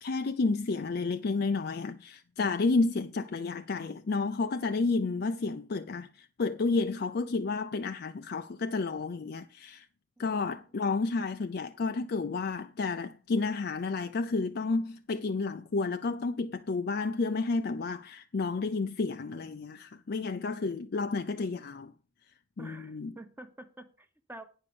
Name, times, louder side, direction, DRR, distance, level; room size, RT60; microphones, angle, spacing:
voice 1, 0.0-9.9 10.2-21.9 22.6-23.1, left 3 dB, 50° left, 0.4 m, -31 dB
voice 2, 10.2-11.1 22.6-24.4, right 2 dB, 10° right, 0.9 m, -49 dB
9.6 x 5.4 x 6.8 m
head